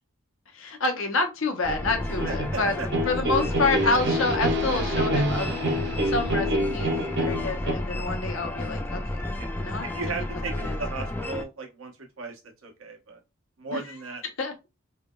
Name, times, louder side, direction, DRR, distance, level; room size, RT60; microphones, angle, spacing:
voice 1, 0.5-2.7 3.1-5.6 6.1-9.0 9.6-10.2 10.6-10.8 13.7-13.9 14.4-14.5, left 3 dB, 75° left, 5 dB, 0.8 m, -28 dB
sound 1, 1.6-11.4, left 1 dB, 10° left, 0.3 m, -32 dB
sound 2, 1.9-7.7, equal, 55° right, 0.7 m, -27 dB
voice 2, 2.3-2.9 3.8-4.0 9.4-9.5 9.8-13.2 13.6-14.2, right 3 dB, 85° right, 2 dB, 1.0 m, -36 dB
3.2 x 2.9 x 2.2 m, 0.25 s
head